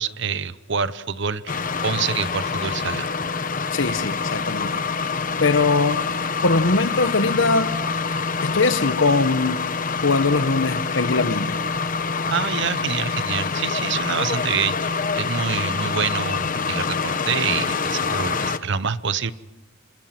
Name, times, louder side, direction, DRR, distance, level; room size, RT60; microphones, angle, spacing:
voice 1, 0.0-3.1 12.3-19.3, right 6 dB, 65° right, 0.9 m, -26 dB
sound 1, 1.5-18.6, left 5 dB, 45° left, 1.0 m, -26 dB
voice 2, 3.7-4.8 5.4-6.1 6.4-7.8 8.4-9.6 10.0-11.6, left 3 dB, 65° left, 1.1 m, -21 dB
29.0 x 26.5 x 6.0 m
head